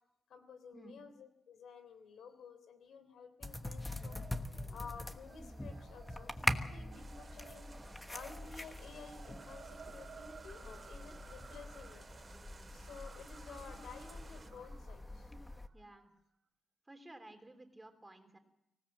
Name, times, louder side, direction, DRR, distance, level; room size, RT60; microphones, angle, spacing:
voice 1, 0.3-4.2 4.7-7.7 8.1-12.0 12.7-15.3, left 5 dB, 90° left, 10 dB, 3.4 m, -53 dB
sound 1, 3.4-15.7, left 1 dB, 10° left, 1.2 m, -43 dB
sound 2, 3.6-16.0, right 6 dB, 55° right, 2.2 m, -58 dB
sound 3, 6.9-14.5, right 3 dB, 30° right, 2.4 m, -58 dB
voice 2, 15.7-16.1 16.9-18.4, right 1 dB, 15° right, 6 dB, 3.3 m, -54 dB
25.5 x 17.0 x 7.4 m, 0.80 s
wide cardioid pair, 145°, 0 cm